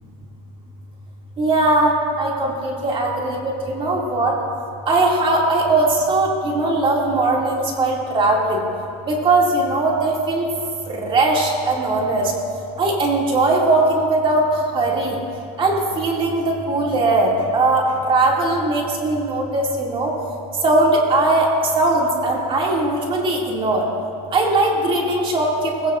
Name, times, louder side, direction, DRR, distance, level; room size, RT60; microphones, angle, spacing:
voice 1, 1.4-1.9 2.2-4.3 4.9-8.6 9.1-10.5 10.9-12.3 12.8-15.2 15.6-20.1 20.6-21.5 21.7-23.9 24.3-25.9, right 2 dB, 25° right, -1 dB, 2.5 m, -19 dB
19.5 x 16.5 x 2.6 m, 2.6 s
supercardioid pair, 130°, 20 cm